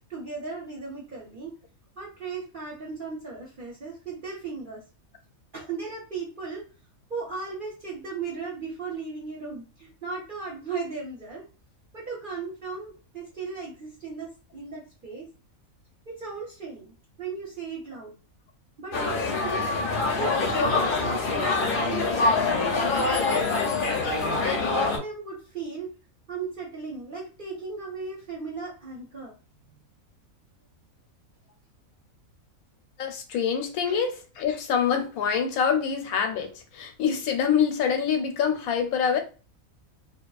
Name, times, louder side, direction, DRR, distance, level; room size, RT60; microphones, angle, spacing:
voice 1, 0.1-1.5 2.0-4.8 5.5-6.6 7.1-11.4 11.9-15.3 16.1-18.2 18.8-19.6 20.2-23.7 24.3-25.9 26.3-29.3 33.8-34.0, right 4 dB, 50° right, 0.7 m, -37 dB
sound 1, 18.9-25.0, left 3 dB, 55° left, 0.6 m, -25 dB
voice 2, 33.0-39.2, left 7 dB, 90° left, 1.1 m, -25 dB
2.8 x 2.3 x 2.3 m
omnidirectional pair, 1.5 m